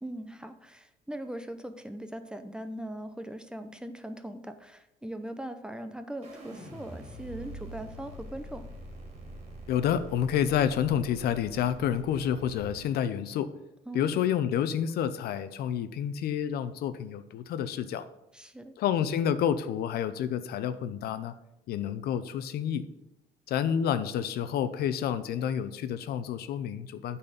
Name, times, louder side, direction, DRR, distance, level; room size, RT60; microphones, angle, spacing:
voice 1, 0.0-8.6 13.9-14.2 18.3-18.7, right 1 dB, 5° right, 8 dB, 0.6 m, -40 dB
sound 1, 6.2-12.9, right 1 dB, 35° right, 2.7 m, -45 dB
voice 2, 9.7-13.5 13.9-18.1 18.8-21.3 21.7-22.9 23.5-27.2, left 9 dB, 70° left, 12 dB, 0.6 m, -29 dB
8.6 x 4.3 x 6.9 m, 0.86 s
cardioid pair, 110°, 17 cm